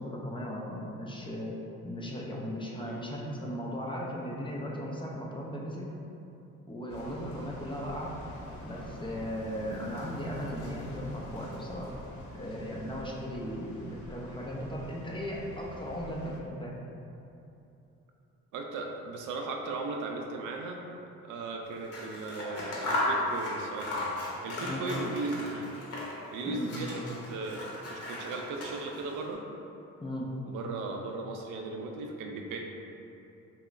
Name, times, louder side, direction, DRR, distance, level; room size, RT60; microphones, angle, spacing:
voice 1, 0.0-1.5 1.8-5.9 6.7-8.1 8.6-11.9 12.4-16.7 24.6-24.8 26.5-26.7 30.0-30.3, equal, 15° left, -2 dB, 0.5 m, -37 dB
sound 1, 6.9-16.4, left 1 dB, 80° left, 0.7 m, -45 dB
voice 2, 18.5-20.8 21.2-25.7 26.3-29.4 30.4-32.6, right 3 dB, 85° right, 2 dB, 0.5 m, -37 dB
Scissors, 21.8-26.3 26.6-29.1, left 1 dB, 55° left, 0.8 m, -35 dB
5.5 x 2.0 x 2.5 m, 2.8 s
cardioid pair, 90°, 30 cm